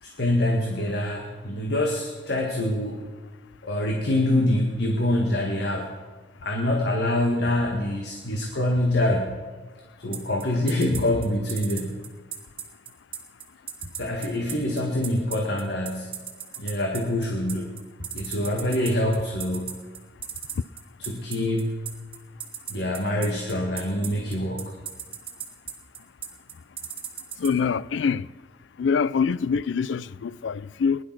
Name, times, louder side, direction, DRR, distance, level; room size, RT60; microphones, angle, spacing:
voice 1, 0.0-3.1 3.6-5.9 6.4-9.4 10.0-12.0 14.0-16.1 16.6-17.8 18.1-19.8 21.0-21.7 22.7-24.8, left 1 dB, 65° left, 1.8 m, -25 dB
sound 1, 10.1-27.5, right 9 dB, 30° right, 2.2 m, -35 dB
voice 2, 27.4-28.3 28.8-31.0, left 6 dB, 90° left, 0.4 m, -24 dB
20.0 x 11.0 x 6.1 m
head